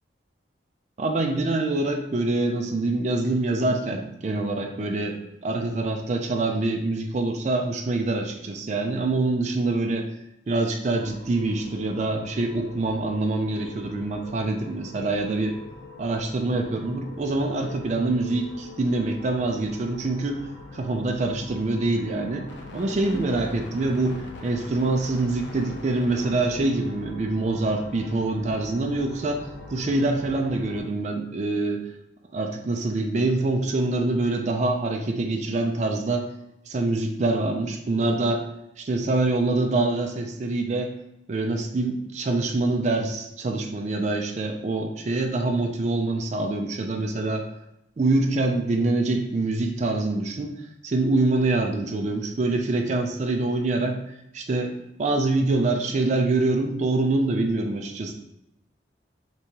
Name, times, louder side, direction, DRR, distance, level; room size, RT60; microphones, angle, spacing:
voice 1, 1.0-10.1 10.5-15.6 16.0-20.5 20.7-22.5 22.7-31.8 32.3-36.2 36.7-38.4 38.8-40.9 41.3-47.4 48.0-50.5 50.8-54.0 54.3-54.7 55.0-58.1, right 2 dB, 40° right, 3 dB, 0.4 m, -25 dB
sound 1, 10.9-30.8, left 2 dB, 90° left, 0.7 m, -42 dB
3.3 x 3.1 x 2.8 m, 0.84 s
head